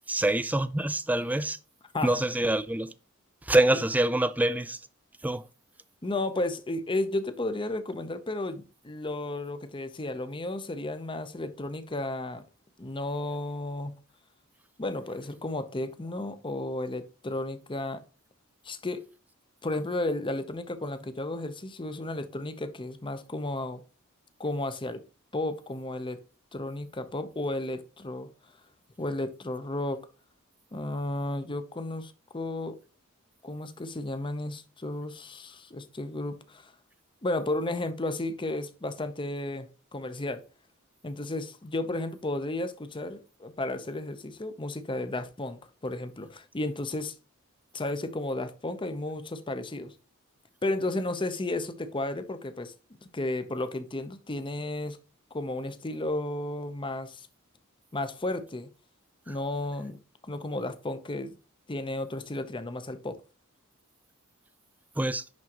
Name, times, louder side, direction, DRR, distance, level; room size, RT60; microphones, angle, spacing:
voice 1, 0.1-1.6 2.0-2.9 3.4-4.8 5.2-5.4 65.0-65.2, right 1 dB, 5° right, 0.4 m, -25 dB
voice 2, 6.0-12.4 12.8-13.9 14.8-18.0 18.6-19.0 19.6-23.8 24.4-25.0 25.3-26.2 26.5-28.3 29.0-30.0 30.7-32.8 33.4-36.7 37.2-40.4 41.0-47.1 47.7-49.9 50.6-52.7 53.1-55.0 55.3-57.3 57.9-58.7 59.3-60.0 60.3-61.3 61.7-63.2, left 2 dB, 25° left, 0.7 m, -33 dB
10.5 x 3.7 x 2.9 m
head